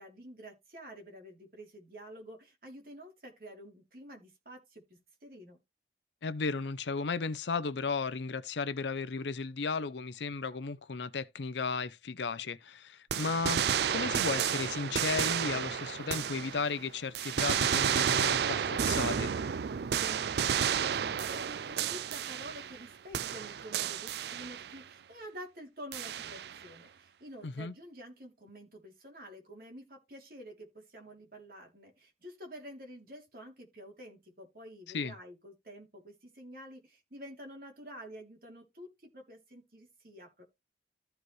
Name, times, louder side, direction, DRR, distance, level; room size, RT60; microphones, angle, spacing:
voice 1, 0.0-5.6 20.0-40.4, equal, 55° right, 3.4 m, -49 dB
voice 2, 6.2-19.3 27.4-27.7 34.9-35.1, left 4 dB, 80° left, 0.6 m, -35 dB
sound 1, 13.1-16.8 17.1-22.9 23.1-24.8 25.9-26.6, right 8 dB, 70° right, 0.4 m, -31 dB
14.0 x 4.8 x 3.2 m
head